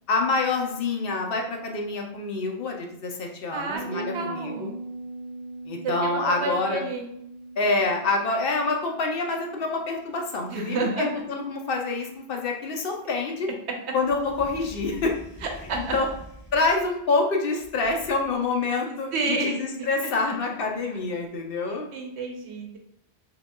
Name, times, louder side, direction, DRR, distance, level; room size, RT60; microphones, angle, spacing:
voice 1, 0.1-4.7 5.7-6.8 7.6-13.5 13.9-15.1 15.9-16.1 16.5-21.9, left 3 dB, 65° left, 2 dB, 0.8 m, -26 dB
voice 2, 3.5-4.8 5.8-7.1 10.5-11.1 15.4-15.9 19.1-19.6 20.3-20.4 21.9-22.8, right 3 dB, 85° right, 2 dB, 1.0 m, -30 dB
Bass guitar, 3.7-13.1, right 2 dB, 65° right, 0.8 m, -42 dB
sound 1, 14.0-17.1 17.6-18.5, equal, 30° left, 0.6 m, -44 dB
4.8 x 2.3 x 2.2 m, 0.76 s
omnidirectional pair, 1.1 m